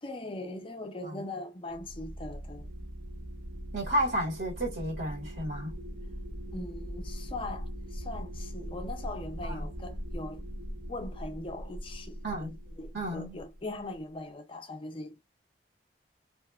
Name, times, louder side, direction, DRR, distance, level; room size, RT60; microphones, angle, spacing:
voice 1, 0.0-2.9 6.5-10.4 10.9-15.3, left 2 dB, 30° left, 0.5 m, -40 dB
sound 1, 1.7-14.0, equal, 40° right, 0.6 m, -41 dB
voice 2, 3.7-5.8 9.5-9.6 12.2-12.5 12.9-13.4, right 1 dB, 80° right, 1.6 m, -32 dB
2.8 x 2.2 x 2.2 m
head